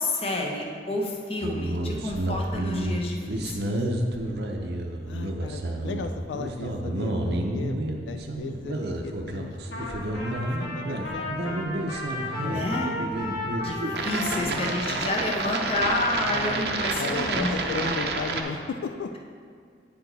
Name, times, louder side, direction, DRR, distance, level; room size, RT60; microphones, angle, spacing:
voice 1, 0.0-3.7 12.4-12.9 13.6-13.8 14.0-17.9, left 2 dB, 35° left, 0 dB, 0.8 m, -29 dB
sound 1, 1.4-18.4, right 2 dB, 65° right, 0.6 m, -30 dB
voice 2, 5.0-7.8 8.1-11.9 13.1-13.4 14.3-15.2 16.2-19.2, left 5 dB, 85° left, 6 dB, 0.3 m, -36 dB
Trumpet, 9.7-16.8, left 2 dB, 55° left, 1.5 m, -35 dB
8.9 x 4.6 x 3.9 m, 2.1 s
head